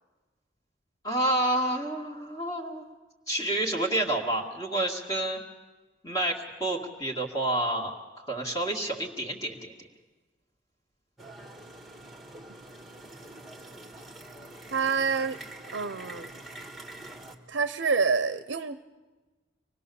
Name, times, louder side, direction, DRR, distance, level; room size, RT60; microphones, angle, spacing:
voice 1, 1.0-2.8 3.3-5.4 6.0-9.7, right 1 dB, 20° left, -1 dB, 2.0 m, -29 dB
sound 1, 11.2-17.3, right 1 dB, ahead, 1.6 m, -45 dB
voice 2, 14.7-15.4 15.7-16.3 17.5-18.8, right 5 dB, 70° right, 11 dB, 0.7 m, -27 dB
25.0 x 19.5 x 7.0 m, 1.3 s
head